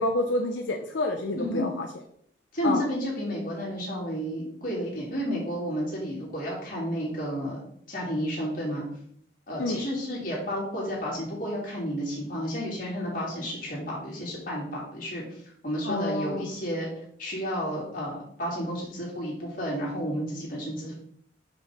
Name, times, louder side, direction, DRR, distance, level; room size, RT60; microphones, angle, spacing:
voice 1, 0.0-1.9 2.6-2.8 9.6-9.8 15.8-16.5, left 2 dB, 85° left, 3 dB, 0.7 m, -28 dB
voice 2, 2.5-7.6 7.9-8.8 9.5-15.2 15.6-16.9 17.2-21.0, equal, 50° left, -4 dB, 3.1 m, -31 dB
6.3 x 5.7 x 4.2 m, 0.67 s
head